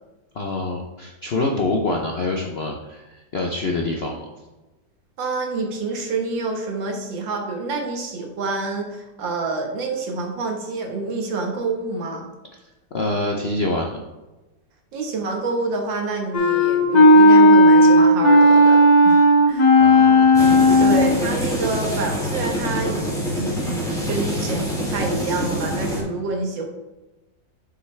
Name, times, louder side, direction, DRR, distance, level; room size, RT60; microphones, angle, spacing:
voice 1, 0.3-4.3 12.9-14.0 19.8-20.3, left 2 dB, 60° left, 1 dB, 0.6 m, -26 dB
voice 2, 5.2-12.3 14.9-19.9 20.8-26.6, right 3 dB, 80° right, 2 dB, 2.0 m, -27 dB
Wind instrument woodwind instrument, 16.3-21.2, left 1 dB, 30° left, 0.9 m, -13 dB
sound 1, 20.3-26.0, equal, ahead, 1.9 m, -26 dB
7.6 x 6.4 x 3.3 m, 1.1 s
omnidirectional pair, 2.0 m